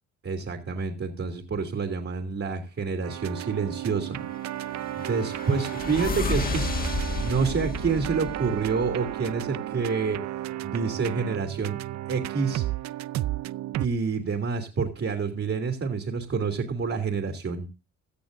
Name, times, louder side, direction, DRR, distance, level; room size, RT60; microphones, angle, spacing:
voice 1, 0.2-4.2 5.0-6.8 7.2-10.2 10.6-11.8 12.1-12.6 13.8-17.7, right 5 dB, 45° right, 5 dB, 2.9 m, -28 dB
sound 1, 3.0-13.9, right 14 dB, 65° right, 0.5 m, -33 dB
sound 2, 4.3-9.2, left 2 dB, 30° left, 1.8 m, -32 dB
17.0 x 13.5 x 2.7 m, 0.32 s
cardioid pair, 90°, 30 cm